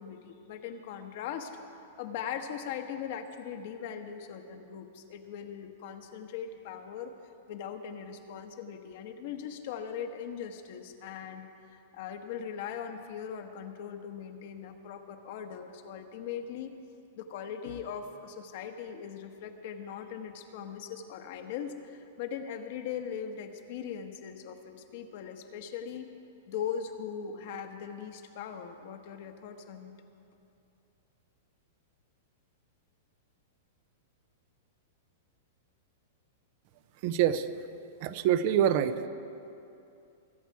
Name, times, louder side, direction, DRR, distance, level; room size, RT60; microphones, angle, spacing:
voice 1, 0.0-1.5 2.0-7.1 7.5-16.7 17.1-26.1 26.5-29.9, left 8 dB, 55° left, 6 dB, 1.1 m, -40 dB
voice 2, 37.0-37.5 38.0-39.1, right 10 dB, 50° right, 12 dB, 0.6 m, -25 dB
22.0 x 8.1 x 4.7 m, 2.7 s
hypercardioid pair, 145°, 0 cm